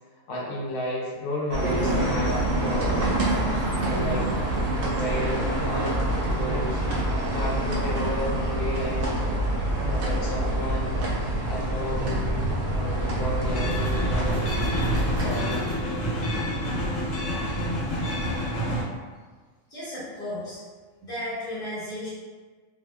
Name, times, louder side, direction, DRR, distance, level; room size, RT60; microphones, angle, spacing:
voice 1, 0.3-2.3 2.6-3.1 3.8-4.3 4.8-6.0 6.2-6.8 7.3-9.4 9.9-11.1 11.4-14.5 15.2-15.7, left 1 dB, 75° left, -6 dB, 1.0 m, -32 dB
sound 1, 1.5-15.3, right 1 dB, 60° right, 0.6 m, -26 dB
sound 2, 13.4-18.8, equal, 55° left, 0.9 m, -28 dB
voice 2, 19.7-20.6 21.0-22.1, left 1 dB, 5° left, -12 dB, 0.8 m, -34 dB
2.6 x 2.1 x 2.3 m, 1.4 s
omnidirectional pair, 1.4 m